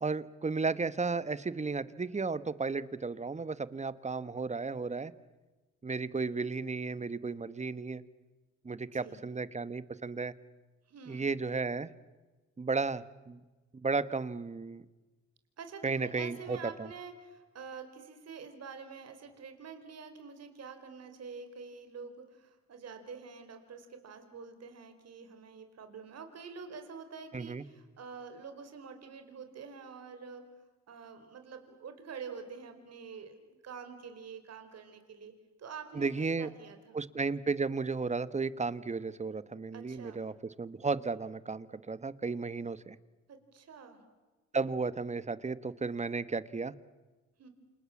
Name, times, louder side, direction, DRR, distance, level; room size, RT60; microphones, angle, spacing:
voice 1, 0.0-5.1 5.8-8.0 8.6-10.3 11.1-11.9 12.6-13.4 13.8-14.8 15.8-16.9 27.3-27.6 35.9-36.5 36.9-43.0 44.5-46.7, right 4 dB, 25° right, 16 dB, 1.3 m, -34 dB
voice 2, 8.9-9.2 10.9-11.3 15.6-30.4 30.9-33.4 33.6-35.3 35.6-37.0 39.7-40.2 43.3-44.0 47.4-47.5, right 5 dB, 55° right, 7 dB, 4.6 m, -47 dB
28.5 x 28.0 x 7.3 m, 1.2 s
cardioid pair, 90°, 30 cm